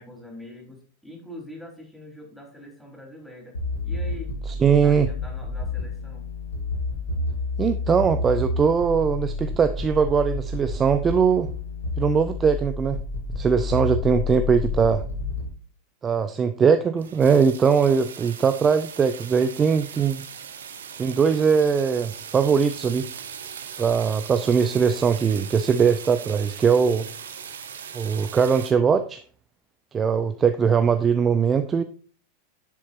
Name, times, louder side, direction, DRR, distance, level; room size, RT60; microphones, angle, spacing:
voice 1, 0.0-3.6 3.8-6.3, left 1 dB, ahead, 4.0 m, -43 dB
sound 1, 3.5-15.5, left 3 dB, 75° left, 2.7 m, -29 dB
voice 2, 4.6-5.1 7.6-11.5 12.0-13.0 13.4-15.0 16.0-20.3 21.0-23.1 23.8-27.1 27.9-29.2 29.9-31.8, right 6 dB, 20° right, 0.6 m, -21 dB
sound 2, 17.0-28.7, right 7 dB, 65° right, 1.2 m, -39 dB
10.5 x 7.5 x 2.6 m
figure-of-eight pair, 90°, 0 cm